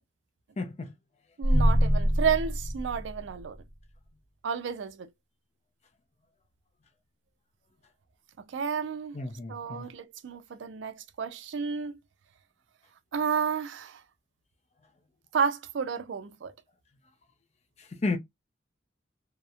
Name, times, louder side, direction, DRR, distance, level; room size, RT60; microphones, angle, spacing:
voice 1, 0.6-0.9 9.2-9.8 18.0-18.2, left 3 dB, 35° left, 0.4 m, -31 dB
sound 1, 1.4-3.7, equal, 70° left, 0.8 m, -25 dB
voice 2, 1.4-3.6 4.4-5.1 8.5-9.2 9.5-12.0 13.1-14.0 15.3-16.5, right 6 dB, 80° right, 0.4 m, -31 dB
2.8 x 2.0 x 2.3 m
head